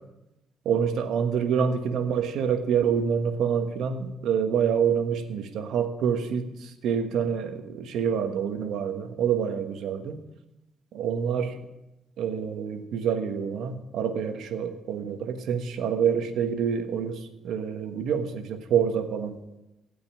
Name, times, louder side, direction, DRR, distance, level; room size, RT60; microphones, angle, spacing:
voice 1, 0.6-10.1 10.9-11.6 12.2-19.4, right 7 dB, 80° right, 8 dB, 1.3 m, -27 dB
16.0 x 5.5 x 9.0 m, 0.95 s
cardioid pair, 90°, 0 cm